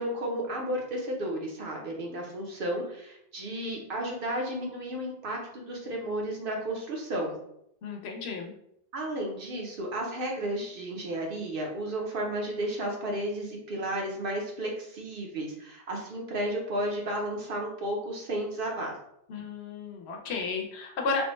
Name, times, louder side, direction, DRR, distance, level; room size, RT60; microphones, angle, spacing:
voice 1, 0.0-7.3 8.9-18.9, right 1 dB, 60° right, 0 dB, 0.9 m, -33 dB
voice 2, 7.8-8.5 19.3-21.3, left 4 dB, 85° left, 2 dB, 0.9 m, -33 dB
3.3 x 2.1 x 3.0 m, 0.76 s
omnidirectional pair, 1.0 m